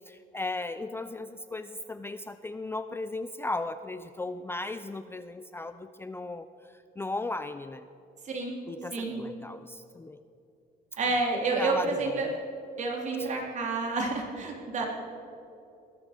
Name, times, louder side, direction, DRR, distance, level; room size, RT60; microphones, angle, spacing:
voice 1, 0.1-7.9 8.7-10.2 11.3-12.3 13.2-13.3, left 2 dB, 15° left, 11 dB, 0.4 m, -36 dB
voice 2, 8.2-8.6 8.9-9.2 11.0-12.4 12.8-14.9, right 3 dB, 45° right, 1 dB, 3.3 m, -29 dB
20.5 x 12.5 x 5.1 m, 2.8 s
cardioid pair, 110°, 17 cm